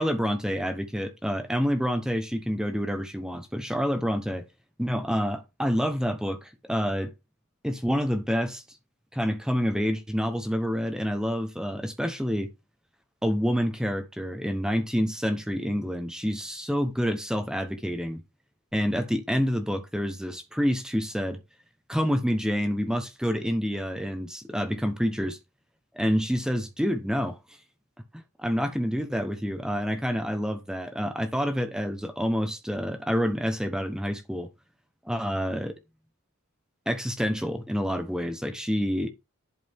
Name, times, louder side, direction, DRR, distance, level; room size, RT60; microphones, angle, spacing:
voice 1, 0.0-4.4 4.8-7.1 7.6-8.6 9.1-12.5 13.2-18.2 18.7-21.4 21.9-25.4 25.9-27.4 28.4-34.5 35.0-35.8 36.9-39.1, equal, 5° right, 1.0 m, -28 dB
11.0 x 5.0 x 3.6 m
head